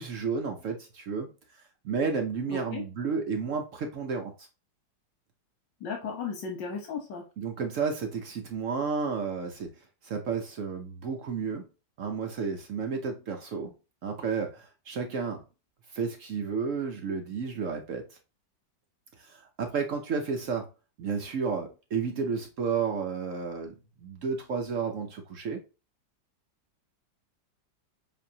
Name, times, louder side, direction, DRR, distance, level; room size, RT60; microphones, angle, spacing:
voice 1, 0.0-4.5 7.4-9.7 10.0-11.7 12.0-13.7 14.0-15.4 15.9-18.2 19.2-20.7 21.0-25.6, right 5 dB, 60° right, 0.8 m, -32 dB
voice 2, 2.5-2.8 5.8-7.2, left 5 dB, 80° left, 1.7 m, -35 dB
7.0 x 2.7 x 2.7 m
omnidirectional pair, 1.9 m